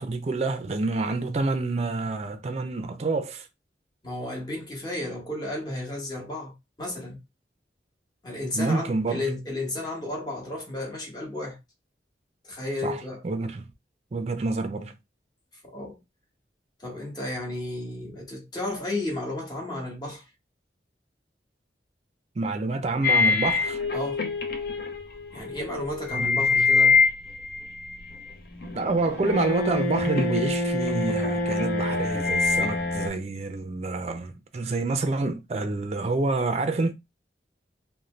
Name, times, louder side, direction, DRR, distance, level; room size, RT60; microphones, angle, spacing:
voice 1, 0.0-3.5 8.5-9.2 12.8-13.7 14.1-14.9 22.4-23.8 26.1-26.7 28.7-36.9, right 3 dB, 35° right, 0.4 m, -28 dB
voice 2, 4.0-7.2 8.2-11.6 12.4-13.2 15.6-16.0 16.8-20.2 23.9-24.3 25.3-27.0, left 1 dB, 25° left, 1.0 m, -33 dB
sound 1, 23.0-28.3 28.6-33.1, left 4 dB, 55° left, 0.6 m, -25 dB
2.6 x 2.1 x 3.1 m
head